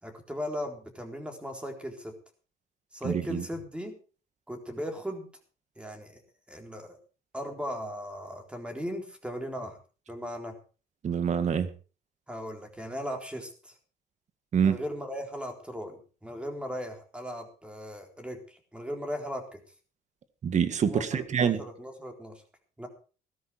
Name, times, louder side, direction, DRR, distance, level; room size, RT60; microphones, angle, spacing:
voice 1, 0.0-2.2 2.9-4.0 4.5-5.2 5.8-6.2 6.5-7.0 7.3-9.8 10.1-10.5 12.3-13.7 14.6-19.6 20.9-22.4 22.8-22.9, equal, 5° right, 4 dB, 4.0 m, -37 dB
voice 2, 3.0-3.4 11.0-11.7 14.5-14.8 20.4-21.6, right 7 dB, 45° right, 12 dB, 1.8 m, -26 dB
16.5 x 13.0 x 4.5 m, 0.36 s
cardioid pair, 110°, 17 cm